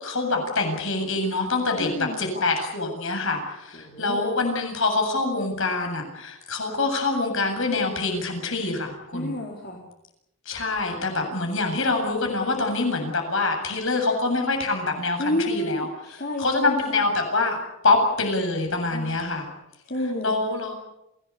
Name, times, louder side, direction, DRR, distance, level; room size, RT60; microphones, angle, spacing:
voice 1, 0.0-9.3 10.4-15.9 16.4-17.6 17.8-19.5 20.2-20.7, left 3 dB, 60° left, 3 dB, 7.9 m, -25 dB
voice 2, 1.8-2.4 3.8-4.3 9.1-9.8 15.2-17.0 18.9-19.1 19.9-20.3, left 1 dB, 45° left, -1 dB, 3.9 m, -30 dB
28.0 x 18.0 x 8.5 m, 0.84 s
head